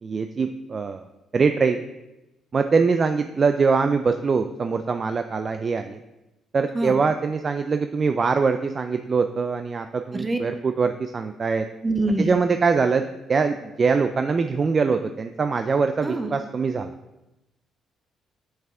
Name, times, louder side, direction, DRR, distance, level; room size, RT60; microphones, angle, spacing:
voice 1, 0.0-1.0 1.3-1.8 2.5-6.0 6.5-11.7 12.2-16.9, right 5 dB, 40° right, 8 dB, 0.3 m, -23 dB
voice 2, 11.8-12.4 16.0-16.3, right 2 dB, 20° right, 5 dB, 0.8 m, -24 dB
5.7 x 5.5 x 3.7 m, 0.98 s
cardioid pair, 90°, 0 cm